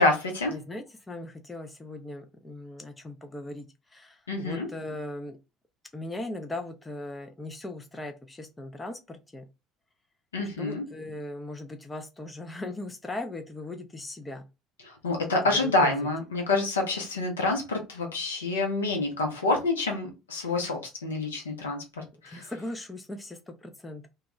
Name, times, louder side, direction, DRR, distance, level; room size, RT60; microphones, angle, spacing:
voice 1, 0.0-0.5 4.3-4.7 10.3-10.8 14.8-22.5, left 2 dB, 75° left, 0.6 m, -27 dB
voice 2, 0.5-5.4 5.9-9.4 10.6-14.5 15.4-16.1 22.1-24.1, left 2 dB, 15° left, 0.4 m, -39 dB
2.2 x 2.1 x 2.9 m
figure-of-eight pair, 60°, 0 cm